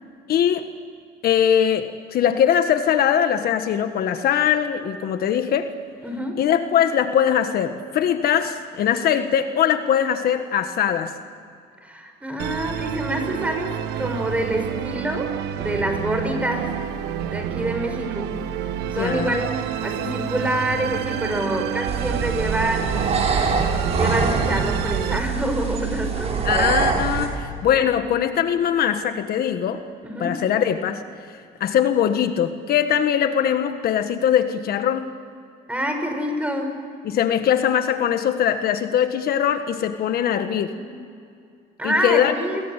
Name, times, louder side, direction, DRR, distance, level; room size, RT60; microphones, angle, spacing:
voice 1, 0.3-0.7 1.2-5.7 6.4-11.1 18.8-19.4 26.4-29.8 30.2-35.1 37.0-40.7 41.8-42.3, left 9 dB, 65° left, 8 dB, 1.5 m, -21 dB
voice 2, 6.0-6.5 11.8-16.7 17.3-18.5 18.9-23.1 24.0-26.7 30.0-30.4 35.7-36.8 40.1-40.4 40.7-41.0 41.8-42.6, right 1 dB, 10° right, 4 dB, 6.3 m, -27 dB
Musical instrument, 12.4-25.2, right 10 dB, 85° right, 1.5 m, -29 dB
sound 1, 21.9-27.3, right 5 dB, 40° right, 6.1 m, -24 dB
29.0 x 22.5 x 8.3 m, 2.4 s
cardioid pair, 110°, 17 cm